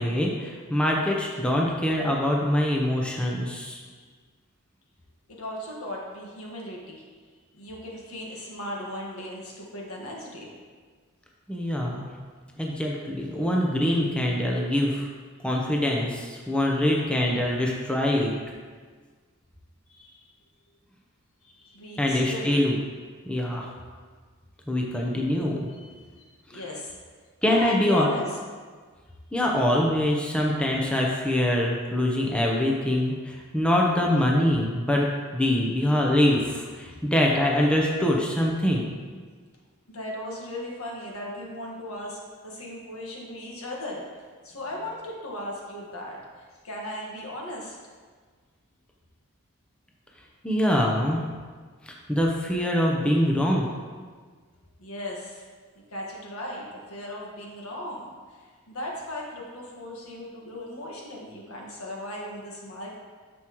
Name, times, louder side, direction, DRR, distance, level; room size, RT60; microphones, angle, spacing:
voice 1, 0.0-3.8 11.5-12.1 12.6-15.1 15.4-18.4 22.0-22.8 23.2-23.7 24.7-25.7 27.4-28.1 29.3-35.1 35.3-38.9 50.4-51.2 51.8-53.7, left 1 dB, 5° left, -2 dB, 0.7 m, -24 dB
voice 2, 5.3-10.5 16.5-16.6 19.9-20.3 21.4-22.6 25.7-26.2 26.5-26.9 27.5-28.3 35.4-35.9 39.9-47.8 54.8-55.4 55.9-63.0, left 1 dB, 80° left, -2 dB, 1.6 m, -37 dB
9.4 x 6.2 x 3.0 m, 1.5 s
head